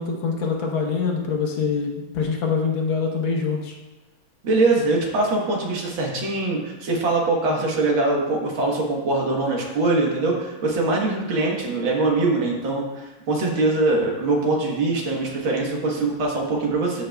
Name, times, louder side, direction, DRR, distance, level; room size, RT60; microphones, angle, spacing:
voice 1, 0.0-3.7, left 5 dB, 70° left, 0 dB, 1.8 m, -24 dB
voice 2, 4.4-17.0, right 2 dB, 70° right, -1 dB, 2.0 m, -22 dB
13.5 x 5.3 x 2.3 m, 1.1 s
omnidirectional pair, 2.3 m